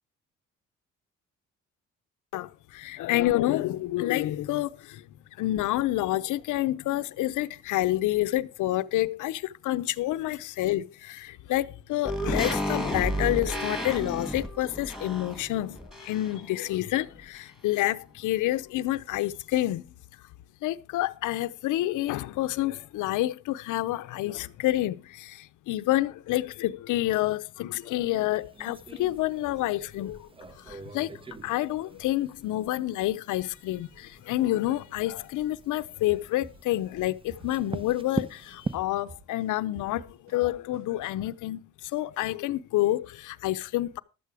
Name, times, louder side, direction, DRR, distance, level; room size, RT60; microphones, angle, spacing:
voice 1, 2.3-5.1 5.4-19.8 20.6-44.0, left 15 dB, 85° left, 0.7 m, -28 dB
sound 1, 12.0-16.5 16.8-16.9, equal, ahead, 2.3 m, -32 dB
sound 2, 28.4-38.8, right 3 dB, 20° right, 0.6 m, -41 dB
sound 3, 36.1-38.4 38.7-41.1, right 2 dB, 45° right, 4.9 m, -48 dB
12.0 x 8.3 x 4.8 m
cardioid pair, 90°, 30 cm